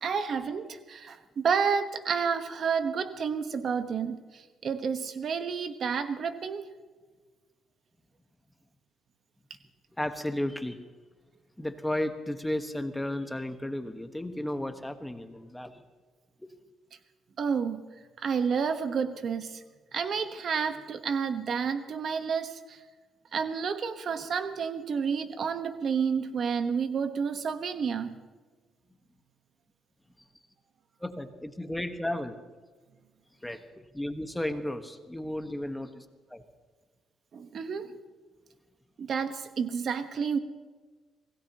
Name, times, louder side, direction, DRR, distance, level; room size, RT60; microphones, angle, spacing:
voice 1, 0.0-6.6 17.4-17.8 18.2-19.6 19.9-22.8 23.3-28.2 37.3-37.9 39.0-40.4, right 6 dB, 55° right, 8 dB, 1.2 m, -30 dB
voice 2, 10.0-10.9 11.6-15.8 31.0-32.4 33.4-36.0 36.3-36.4, left 1 dB, 10° left, 7 dB, 1.4 m, -34 dB
26.0 x 17.0 x 3.0 m, 1.4 s
cardioid pair, 90°, 0 cm